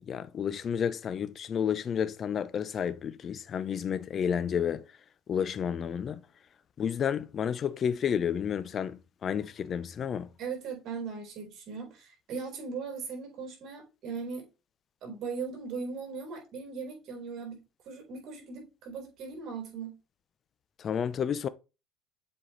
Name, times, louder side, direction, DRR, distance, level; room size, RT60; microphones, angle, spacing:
voice 1, 0.1-4.8 5.3-6.2 6.8-10.3 20.8-21.5, left 8 dB, 40° left, 0.7 m, -31 dB
voice 2, 10.4-14.5 15.0-17.6 17.9-20.0, right 5 dB, 55° right, 4.4 m, -38 dB
7.6 x 4.5 x 3.3 m
cardioid pair, 115°, 0 cm